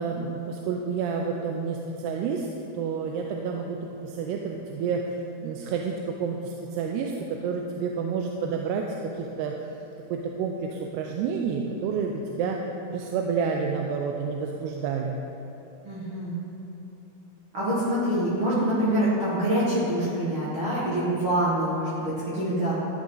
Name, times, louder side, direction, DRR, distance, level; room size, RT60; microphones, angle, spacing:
voice 1, 0.0-2.5 2.7-5.0 5.4-9.6 10.1-12.6 12.9-15.2, right 5 dB, 90° right, 2 dB, 2.7 m, -29 dB
voice 2, 15.8-16.4 17.5-22.8, right 1 dB, 45° right, -8 dB, 1.8 m, -25 dB
13.5 x 8.6 x 3.9 m, 3.0 s
omnidirectional pair, 4.6 m